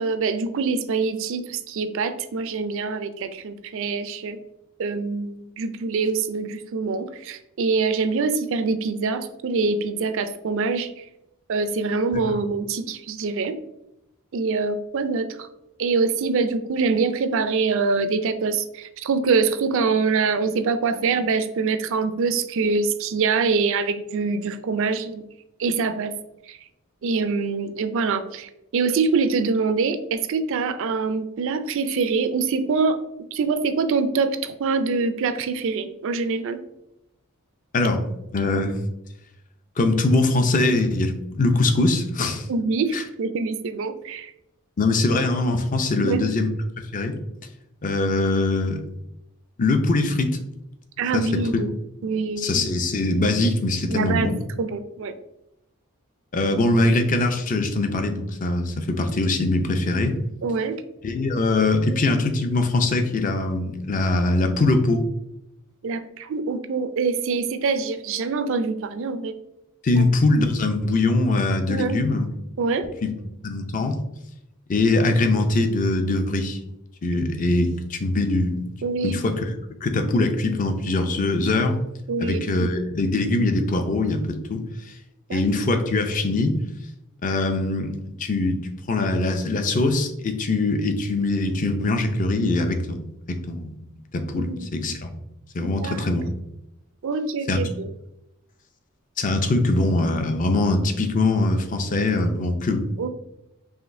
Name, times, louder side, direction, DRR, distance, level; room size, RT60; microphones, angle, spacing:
voice 1, 0.0-4.4 4.8-11.1 11.5-13.6 14.3-15.3 15.8-25.2 25.6-26.1 26.5-26.6 27.0-33.0 33.3-36.6 42.5-44.3 45.9-46.3 51.0-51.7 52.0-52.5 53.9-54.3 54.6-55.1 60.4-60.8 65.8-69.3 69.9-70.1 71.7-72.0 72.6-72.9 78.8-79.2 82.1-82.4 85.3-85.4 94.4-94.7 95.8-96.1 97.0-97.9 103.0-103.1, right 4 dB, 65° right, 10 dB, 0.4 m, -24 dB
voice 2, 38.3-38.7 39.8-42.5 42.9-43.0 44.8-46.5 46.9-47.1 47.8-48.8 49.6-50.4 51.1-51.6 52.4-54.4 56.3-60.2 61.0-65.0 69.8-72.3 73.0-73.1 73.4-74.0 74.7-76.6 77.0-78.7 79.0-79.5 79.8-81.8 82.2-84.9 85.3-86.6 87.2-87.9 88.2-88.6 88.9-93.1 93.5-93.7 94.1-95.1 95.5-96.3 97.5-97.6 99.2-102.9, left 2 dB, 40° left, 6 dB, 0.5 m, -22 dB
4.9 x 3.1 x 2.6 m, 0.86 s
head